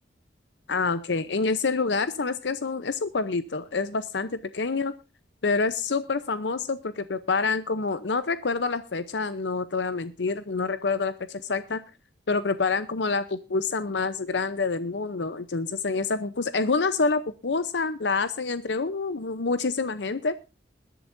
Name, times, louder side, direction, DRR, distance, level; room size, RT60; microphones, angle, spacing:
voice 1, 0.7-4.9 5.4-11.8 12.3-20.3, left 4 dB, 75° left, 13 dB, 0.7 m, -27 dB
21.5 x 11.0 x 2.6 m, 0.30 s
head